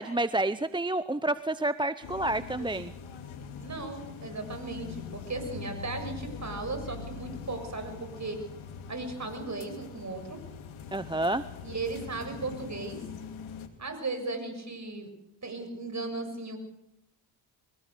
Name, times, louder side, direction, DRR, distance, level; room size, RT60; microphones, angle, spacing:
voice 1, 0.0-2.9 10.9-11.4, right 2 dB, 10° right, 14 dB, 0.7 m, -29 dB
sound 1, 2.0-13.7, left 7 dB, 80° left, 2.8 m, -43 dB
voice 2, 3.6-8.4 8.9-10.4 11.6-13.0 13.8-15.1 15.4-16.6, right 3 dB, 35° right, 7 dB, 7.0 m, -36 dB
23.0 x 18.0 x 6.8 m, 0.86 s
supercardioid pair, 70°, 48 cm